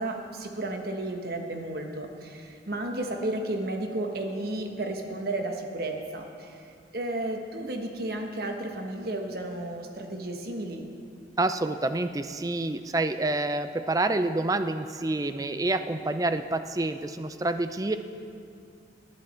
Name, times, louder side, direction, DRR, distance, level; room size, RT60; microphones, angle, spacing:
voice 1, 0.0-6.7 6.9-10.9, right 1 dB, 55° right, 3 dB, 1.3 m, -33 dB
voice 2, 11.4-18.0, right 2 dB, 20° right, 10 dB, 0.5 m, -28 dB
18.5 x 10.5 x 4.4 m, 2.4 s
head